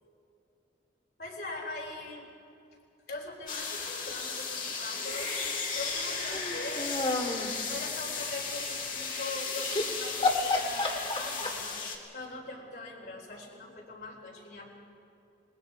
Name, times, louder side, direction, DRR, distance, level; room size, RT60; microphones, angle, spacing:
voice 1, 1.2-2.2 3.1-11.7 12.1-14.7, left 2 dB, 65° left, -2 dB, 4.2 m, -42 dB
sound 1, 3.5-12.0, left 4 dB, 50° left, 2.6 m, -35 dB
sound 2, 6.2-7.6 9.6-9.8 10.2-11.8, left 3 dB, 30° left, 1.9 m, -30 dB
27.0 x 20.0 x 4.8 m, 2.8 s
head